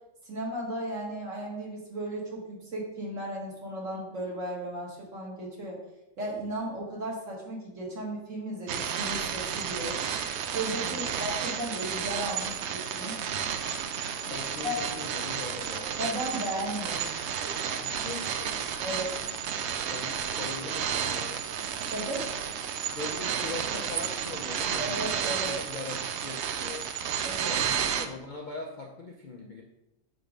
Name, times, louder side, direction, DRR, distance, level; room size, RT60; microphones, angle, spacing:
voice 1, 0.3-5.8 6.2-10.0 10.5-13.2 14.6-14.8 16.0-17.1 18.8-19.1 21.9-22.3 24.8-25.5 27.2-27.5, right 1 dB, 55° right, -4 dB, 2.2 m, -35 dB
sound 1, 8.7-28.1, right 8 dB, 70° right, 0.6 m, -32 dB
voice 2, 10.8-11.2 12.2-12.3 14.2-15.9 17.8-18.6 19.9-21.4 22.9-25.1 25.4-26.9 27.5-29.6, left 3 dB, 50° left, -1 dB, 0.5 m, -41 dB
sound 2, 12.2-26.8, right 2 dB, 90° right, 1.8 m, -48 dB
6.7 x 3.5 x 5.1 m, 0.90 s
omnidirectional pair, 1.6 m